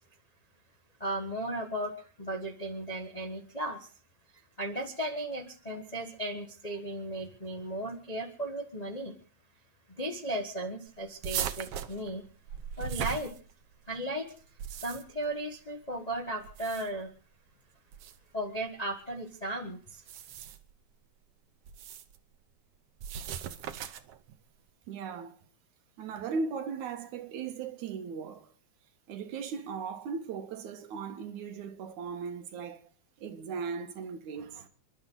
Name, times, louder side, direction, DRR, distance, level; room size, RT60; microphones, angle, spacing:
voice 1, 1.0-3.9 4.6-9.2 10.0-12.2 12.8-13.3 13.9-14.3 14.7-17.1 18.3-20.0, right 1 dB, 40° left, 0.5 m, -36 dB
sound 1, 11.2-13.9 14.4-15.3 16.4-17.1 17.9-18.2 19.9-20.7 21.7-22.2 23.0-24.2, right 9 dB, 65° right, 1.8 m, -38 dB
voice 2, 24.9-25.4 26.0-28.5 29.1-32.8 33.2-34.7, right 5 dB, 90° right, 2.8 m, -37 dB
28.0 x 11.5 x 3.9 m
omnidirectional pair, 3.3 m